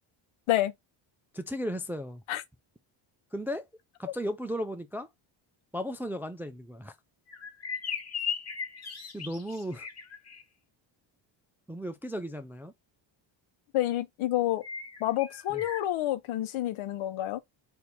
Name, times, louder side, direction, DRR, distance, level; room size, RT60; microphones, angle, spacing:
voice 1, 1.3-2.2 3.3-3.6 4.0-5.1 5.7-6.9 9.1-9.9 11.7-12.7 15.5-15.6, equal, 5° right, 0.4 m, -35 dB
sound 1, 7.3-10.4 14.6-15.8, left 6 dB, 30° left, 1.4 m, -37 dB
voice 2, 13.7-14.6 15.0-17.4, left 14 dB, 75° left, 0.9 m, -28 dB
4.3 x 2.7 x 4.1 m
cardioid pair, 110°, 49 cm